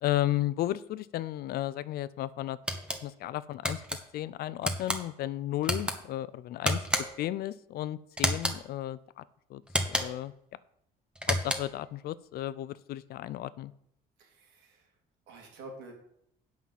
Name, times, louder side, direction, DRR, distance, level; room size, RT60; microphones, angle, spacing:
voice 1, 0.0-2.6 3.0-6.8 7.2-9.2 9.5-9.6 9.9-10.3 11.3-13.7, left 14 dB, 65° left, 17 dB, 0.5 m, -34 dB
sound 1, 2.7-3.0 3.6-4.0 4.6-5.0 5.6-6.0 6.6-7.3 8.2-8.6 9.7-10.3 11.2-11.8, equal, 5° right, 1.3 m, -30 dB
voice 2, 14.2-14.9 15.3-15.9, right 2 dB, 90° right, 0 dB, 3.3 m, -48 dB
8.4 x 5.8 x 7.5 m, 0.72 s
cardioid pair, 110°, 17 cm